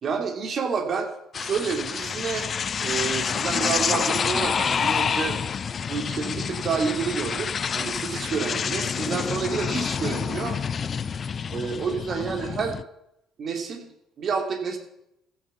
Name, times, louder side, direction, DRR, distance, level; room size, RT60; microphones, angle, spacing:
voice 1, 0.0-5.4 5.9-10.6 11.5-12.8 13.4-13.9 14.2-14.8, right 5 dB, 45° right, 4 dB, 2.5 m, -29 dB
sound 1, 1.3-12.8, left 6 dB, 40° left, 0.5 m, -28 dB
14.5 x 7.2 x 7.1 m, 0.83 s
figure-of-eight pair, 50°, 0 cm